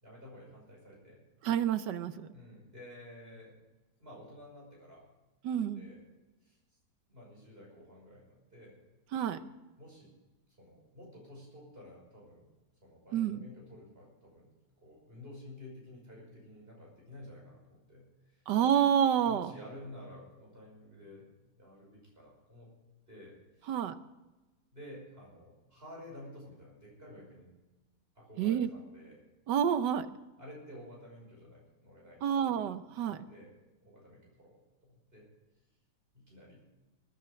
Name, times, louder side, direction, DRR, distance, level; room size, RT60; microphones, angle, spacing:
voice 1, 0.0-1.2 2.3-3.6 4.0-5.1 5.7-6.0 6.4-6.6 7.1-8.8 9.3-9.5 9.8-10.1 10.6-12.5 12.8-14.5 14.8-18.4 19.2-21.3 21.6-22.7 23.1-23.8 24.7-27.5 28.2-29.2 30.4-32.2 32.5-32.6 33.1-33.5 33.8-34.6 34.8-35.3 36.1-36.6, left 1 dB, 30° right, -2 dB, 6.0 m, -51 dB
voice 2, 1.4-2.3 5.4-5.8 9.1-9.4 13.1-13.5 18.5-19.5 23.7-23.9 28.4-28.7 29.5-30.1 32.2-33.2, right 9 dB, 75° right, 12 dB, 1.4 m, -28 dB
20.0 x 10.0 x 5.2 m, 1.1 s
omnidirectional pair, 1.9 m